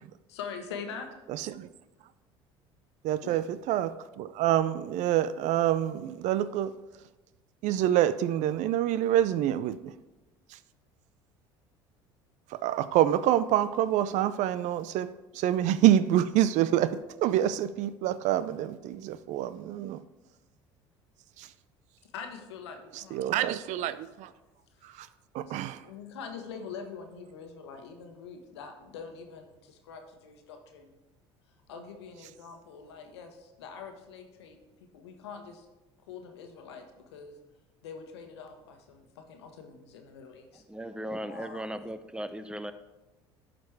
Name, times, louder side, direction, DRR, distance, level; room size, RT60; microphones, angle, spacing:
voice 1, 0.3-1.1 3.1-3.4 22.1-24.0 24.7-24.8 25.4-30.9 31.7-34.6 34.9-35.7 36.0-37.4 37.8-40.6 41.3-41.6, left 6 dB, 85° left, 1.2 m, -44 dB
voice 2, 3.0-6.7 7.6-9.8 12.6-15.1 15.4-20.0 22.9-24.3 25.3-25.8, right 12 dB, 60° right, 0.5 m, -26 dB
voice 3, 40.7-42.7, equal, 5° right, 0.7 m, -37 dB
11.5 x 5.1 x 4.7 m
hypercardioid pair, 70°, 14 cm